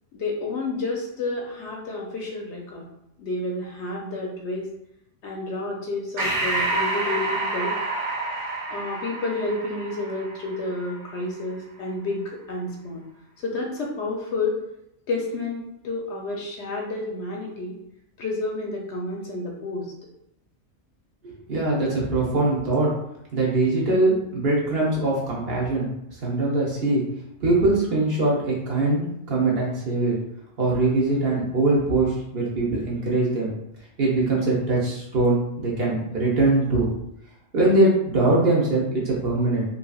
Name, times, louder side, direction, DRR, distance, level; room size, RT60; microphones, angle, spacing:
voice 1, 0.1-2.8 3.2-4.7 5.2-7.8 8.7-13.0 13.4-14.6 15.1-17.8 18.2-19.9, left 2 dB, 65° left, -1 dB, 0.8 m, -30 dB
Breathing, 6.2-11.1, right 2 dB, 80° right, 1.1 m, -28 dB
voice 2, 21.5-22.9 23.3-25.9 26.2-27.0 27.4-30.1 30.6-33.5 34.0-36.9 37.5-39.7, right 2 dB, 55° right, -5 dB, 0.9 m, -22 dB
3.1 x 2.7 x 2.3 m, 0.80 s
omnidirectional pair, 1.4 m